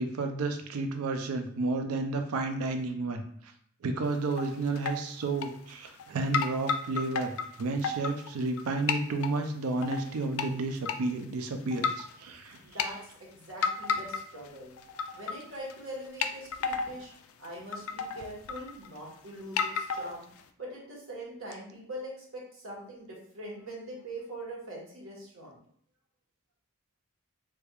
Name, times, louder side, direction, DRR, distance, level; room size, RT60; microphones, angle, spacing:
voice 1, 0.0-3.5 3.8-12.6, right 3 dB, 80° right, 6 dB, 0.4 m, -31 dB
sound 1, 4.0-4.5 4.8-5.0 5.4-6.1 6.3-8.6 8.9-9.3 9.8-10.5 10.9-11.0 11.7-12.1 12.6-12.9 13.6-14.5 14.8-15.4 15.7-15.8 16.2-17.0 17.4-17.5 17.7-19.0 19.6-20.4, left 5 dB, 75° left, 0.3 m, -31 dB
voice 2, 12.6-14.7 15.1-17.1 17.4-20.3 20.6-25.6, right 1 dB, 65° right, -3 dB, 1.2 m, -43 dB
3.4 x 3.3 x 2.3 m, 0.63 s
head